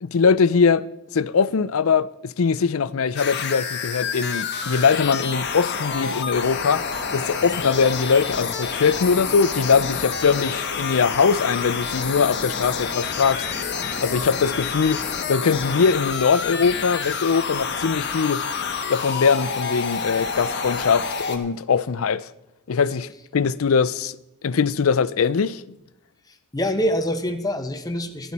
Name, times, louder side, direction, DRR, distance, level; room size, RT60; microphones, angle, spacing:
voice 1, 0.0-0.9 1.1-6.8 7.1-13.4 14.0-15.0 15.3-18.4 18.9-22.3 22.7-24.2 24.4-25.6, left 5 dB, 75° left, 0.5 m, -21 dB
sound 1, 3.2-21.4, left 5 dB, 55° left, 1.3 m, -28 dB
voice 2, 26.3-28.3, equal, 20° left, 1.0 m, -25 dB
15.0 x 12.0 x 4.2 m
head